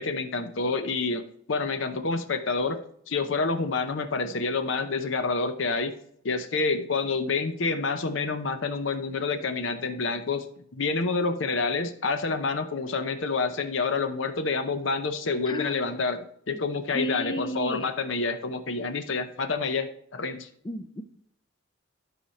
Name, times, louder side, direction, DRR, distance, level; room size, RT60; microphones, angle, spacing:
voice 1, 0.0-5.9 6.2-10.4 10.7-20.5, left 4 dB, 65° left, 8 dB, 0.7 m, -28 dB
voice 2, 15.4-16.0 16.5-16.6 16.9-17.9 20.6-21.0, equal, 20° left, 11 dB, 0.5 m, -33 dB
12.0 x 5.0 x 4.2 m, 0.67 s
head